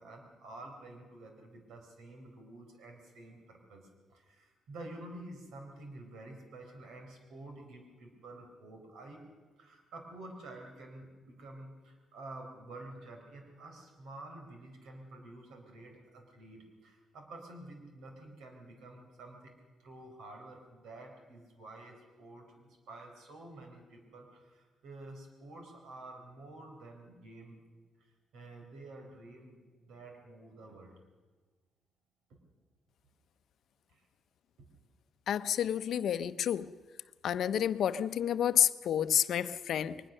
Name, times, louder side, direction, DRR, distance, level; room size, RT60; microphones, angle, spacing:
voice 1, 0.0-9.2 9.6-19.5 19.8-27.6 28.3-31.0 32.3-32.4 33.9-34.1 34.6-34.7, right 2 dB, 90° right, 4.3 m, -50 dB
voice 2, 35.3-36.7 37.2-40.0, left 9 dB, 70° left, 0.7 m, -29 dB
22.0 x 20.0 x 6.6 m
cardioid pair, 110°, 0 cm